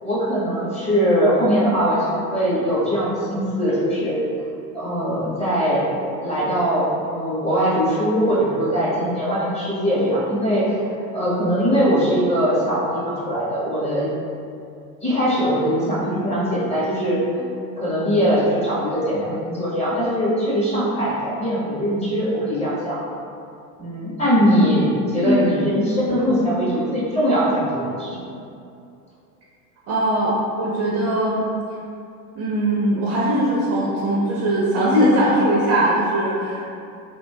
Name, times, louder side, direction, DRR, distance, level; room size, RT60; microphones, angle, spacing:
voice 1, 0.0-4.2 4.7-5.9 6.2-14.1 15.0-17.5 17.8-23.0 23.8-28.4, equal, 15° left, -7 dB, 0.6 m, -21 dB
voice 2, 29.9-31.4 32.4-36.6, right 1 dB, 35° right, -5 dB, 0.4 m, -20 dB
2.9 x 2.2 x 2.7 m, 2.5 s
hypercardioid pair, 95°, 49 cm